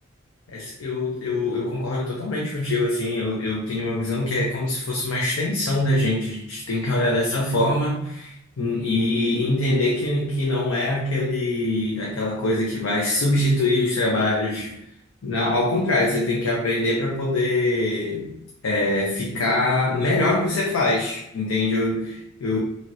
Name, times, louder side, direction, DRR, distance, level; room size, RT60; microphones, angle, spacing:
voice 1, 0.5-14.8 15.2-18.3 18.6-22.6, left 2 dB, 90° left, -2 dB, 0.5 m, -23 dB
3.0 x 2.8 x 2.5 m, 0.80 s
head